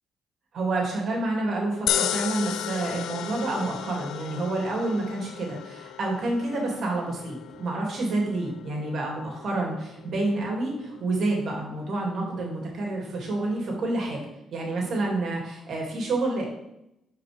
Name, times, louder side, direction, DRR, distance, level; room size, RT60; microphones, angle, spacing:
voice 1, 0.5-14.2 14.5-16.5, right 2 dB, 60° right, -1 dB, 2.3 m, -28 dB
sound 1, 1.9-14.2, left 10 dB, 80° left, 0.4 m, -36 dB
9.7 x 4.7 x 3.4 m, 0.85 s
cardioid pair, 90°, 0 cm